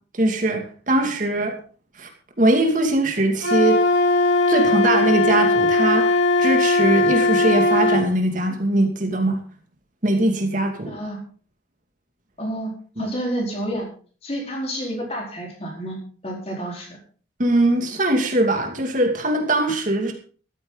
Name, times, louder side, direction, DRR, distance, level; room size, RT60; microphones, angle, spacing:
voice 1, 0.1-1.5 2.0-2.1 2.4-3.8 4.5-9.4 10.0-10.9 13.0-13.1 17.4-20.1, right 1 dB, 45° right, 3 dB, 2.4 m, -21 dB
Wind instrument woodwind instrument, 3.4-8.0, left 2 dB, 80° left, 2.5 m, -19 dB
voice 2, 10.9-11.2 12.4-13.9 14.2-16.0 16.2-17.0, right 1 dB, 30° left, 0 dB, 4.3 m, -29 dB
14.0 x 13.5 x 4.0 m, 0.42 s
head